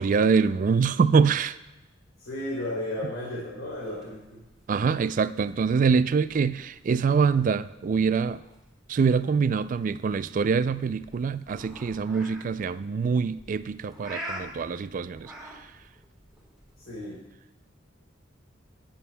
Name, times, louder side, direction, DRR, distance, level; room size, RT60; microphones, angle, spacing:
voice 1, 0.0-1.6 4.7-8.4 8.9-15.3, right 5 dB, 45° right, 0.3 m, -24 dB
voice 2, 2.2-4.4 16.8-17.2, left 1 dB, 90° left, 2.9 m, -34 dB
sound 1, 3.7-16.9, right 1 dB, 5° right, 2.6 m, -46 dB
18.0 x 10.5 x 2.2 m
head